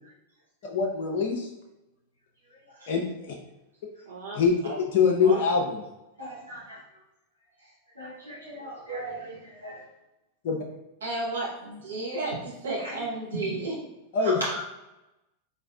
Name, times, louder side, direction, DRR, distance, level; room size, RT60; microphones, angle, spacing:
voice 1, 0.6-1.5 2.9-3.4 4.3-5.8 10.4-10.6 14.1-14.4, left 5 dB, 50° left, 1 dB, 0.4 m, -24 dB
voice 2, 4.1-4.8 5.2-5.4 11.0-13.8 14.2-14.6, right 2 dB, 65° right, -4 dB, 1.0 m, -33 dB
voice 3, 6.2-6.8 8.0-9.8 12.8-12.9, right 2 dB, 85° right, -8 dB, 0.8 m, -40 dB
4.0 x 2.6 x 2.3 m, 0.97 s
figure-of-eight pair, 90°, 0 cm